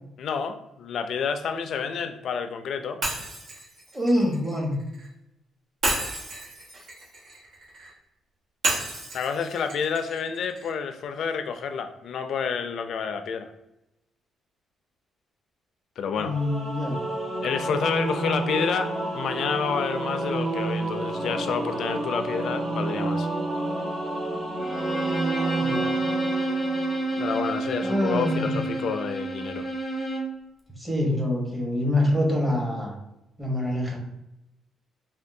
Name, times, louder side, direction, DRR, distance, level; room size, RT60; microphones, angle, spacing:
voice 1, 0.2-3.0 9.1-13.5 16.0-16.4 17.4-23.3 27.2-29.7, left 6 dB, 65° left, 8 dB, 0.3 m, -29 dB
Shatter, 3.0-5.1 5.8-7.9 8.6-10.7, right 2 dB, 70° right, 1.1 m, -31 dB
voice 2, 3.9-4.8 16.2-17.0 25.6-25.9 27.8-28.5 30.8-33.0 33.4-34.0, left 1 dB, 10° right, -1 dB, 1.0 m, -25 dB
Singing / Musical instrument, 16.2-27.5, right 2 dB, 45° right, 1.2 m, -30 dB
Bowed string instrument, 24.6-30.4, right 2 dB, 10° left, 0.8 m, -29 dB
3.5 x 2.2 x 2.6 m, 0.91 s
cardioid pair, 90°, 0 cm